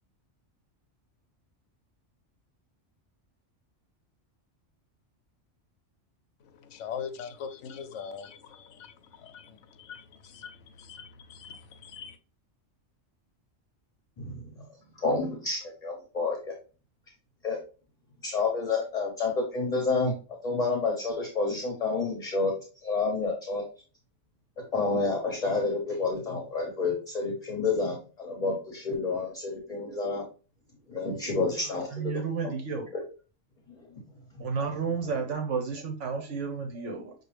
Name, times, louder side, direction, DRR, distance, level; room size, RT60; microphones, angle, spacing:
voice 1, 6.4-12.2, left 7 dB, 75° left, 0.9 m, -42 dB
voice 2, 14.2-14.5 15.0-16.5 17.4-17.6 18.2-20.1 20.4-22.5 22.8-23.6 24.7-30.2 30.9-32.5 32.9-33.0 33.7-34.0 34.7-34.8, left 3 dB, 35° left, 0.9 m, -29 dB
voice 3, 31.7-32.9 34.4-37.1, right 5 dB, 75° right, 1.1 m, -32 dB
6.1 x 2.4 x 3.2 m
omnidirectional pair, 1.3 m